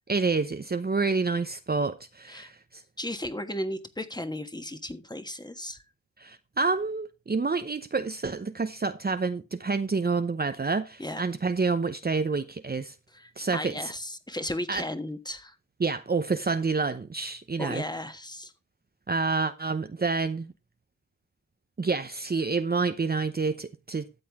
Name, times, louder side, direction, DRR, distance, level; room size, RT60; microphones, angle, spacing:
voice 1, 0.1-2.8 6.2-12.9 13.4-13.9 14.7-14.8 15.8-17.8 19.1-20.5 21.8-24.1, right 4 dB, 30° right, 0.8 m, -28 dB
voice 2, 3.0-5.8 11.0-11.2 13.1-15.5 17.6-18.5, left 1 dB, 15° left, 1.5 m, -35 dB
13.0 x 7.7 x 3.6 m
wide cardioid pair, 75°, 30 cm